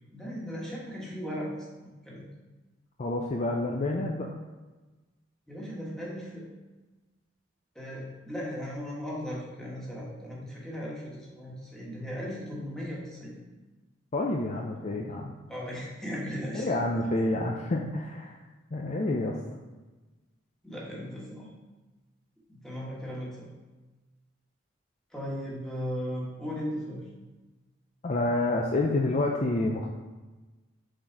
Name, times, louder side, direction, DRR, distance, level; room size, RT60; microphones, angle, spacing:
voice 1, 0.1-2.3 5.5-6.5 7.7-13.4 15.5-16.8 20.6-21.5 22.5-23.5 25.1-27.0, equal, 5° left, -5 dB, 1.5 m, -37 dB
voice 2, 3.0-4.3 14.1-15.3 16.5-18.4 18.7-19.4 28.0-29.9, left 2 dB, 35° left, 0 dB, 0.5 m, -28 dB
6.3 x 4.0 x 4.7 m, 1.2 s
head